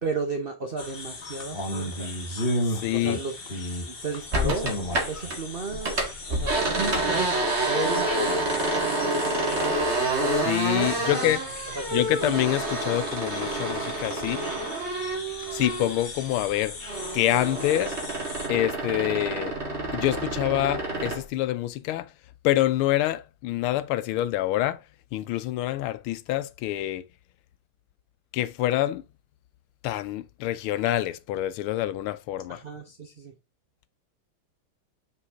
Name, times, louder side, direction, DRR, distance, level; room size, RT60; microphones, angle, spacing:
voice 1, 0.0-2.1 2.9-3.4 3.7-4.7 5.1-6.0 6.3-6.6 7.0-7.3 7.7-10.3 10.8-11.4 11.7-12.0 32.5-33.3, right 4 dB, 85° right, 0.5 m, -34 dB
sound 1, 0.8-18.5, left 1 dB, 30° left, 1.3 m, -36 dB
voice 2, 2.7-3.2 10.4-11.4 11.9-14.4 15.5-16.7 17.1-18.0 18.5-19.6 19.9-22.1 22.4-24.8 25.1-27.0 28.3-29.0 29.8-32.6, left 14 dB, 85° left, 1.5 m, -26 dB
sound 2, 4.3-5.4 5.7-16.1 16.4-21.2, right 2 dB, 35° right, 2.0 m, -28 dB
5.7 x 5.0 x 3.6 m
omnidirectional pair, 2.3 m